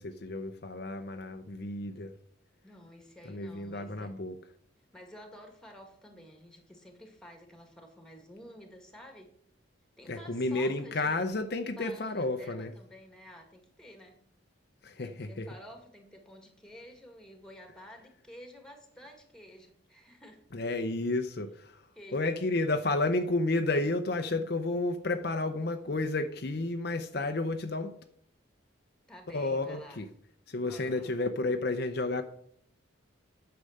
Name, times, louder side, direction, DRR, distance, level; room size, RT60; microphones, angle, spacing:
voice 1, 0.0-2.1 3.2-4.3 10.1-12.7 14.8-15.5 20.5-28.0 29.3-30.1 30.5-32.2, left 2 dB, 50° left, 7 dB, 0.6 m, -31 dB
voice 2, 2.6-4.1 4.9-9.3 10.0-11.3 11.6-14.2 15.0-20.4 21.9-22.5 29.1-30.0 30.6-31.2, equal, 5° left, 4 dB, 1.9 m, -51 dB
9.9 x 6.8 x 6.5 m, 0.65 s
head